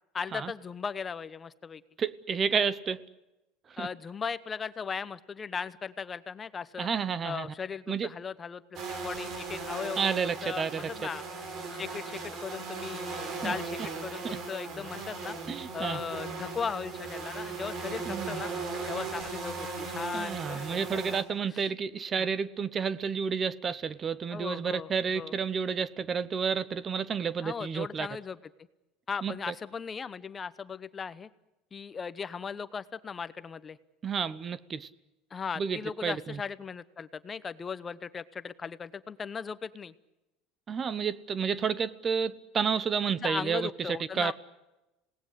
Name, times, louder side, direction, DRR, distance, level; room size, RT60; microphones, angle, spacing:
voice 1, 0.1-1.8 3.8-6.9 7.2-11.2 11.7-15.4 15.7-18.5 18.9-21.2 21.5-21.6 22.2-22.3 24.3-25.3 27.4-28.4 29.1-31.3 31.7-33.8 35.3-39.9 43.1-44.3, left 6 dB, 25° left, 14 dB, 0.9 m, -37 dB
voice 2, 2.0-3.0 3.7-3.9 6.8-7.5 7.9-8.1 10.0-10.9 13.4-13.5 15.5-16.0 18.1-18.4 20.1-28.1 29.2-29.5 34.0-34.9 35.6-36.4 40.7-44.3, right 6 dB, 30° right, 18 dB, 0.9 m, -31 dB
sound 1, 8.8-21.2, right 4 dB, 45° right, 4.6 m, -38 dB
27.0 x 19.0 x 10.0 m, 0.99 s
supercardioid pair, 125°, 0 cm